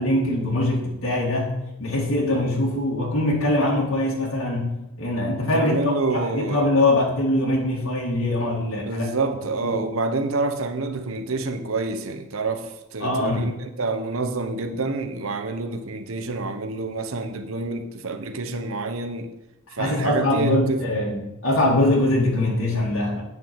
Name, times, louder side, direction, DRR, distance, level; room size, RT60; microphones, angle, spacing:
voice 1, 0.0-9.1 9.6-9.7 13.0-13.4 19.7-23.2, left 1 dB, 75° left, -4 dB, 2.3 m, -23 dB
voice 2, 5.5-6.7 8.9-19.3 19.8-20.9, right 3 dB, 75° right, 7 dB, 1.0 m, -27 dB
9.6 x 6.3 x 7.0 m, 0.93 s
head